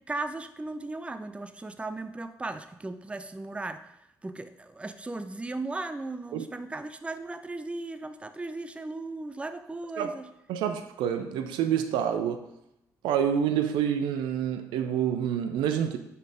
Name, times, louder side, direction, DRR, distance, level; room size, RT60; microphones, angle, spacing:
voice 1, 0.1-3.8 4.2-10.3, right 2 dB, 15° right, 10 dB, 0.5 m, -36 dB
voice 2, 10.5-12.5 13.0-16.0, right 9 dB, 60° right, 8 dB, 0.5 m, -27 dB
5.5 x 5.3 x 5.0 m, 0.86 s
figure-of-eight pair, 40°, 9 cm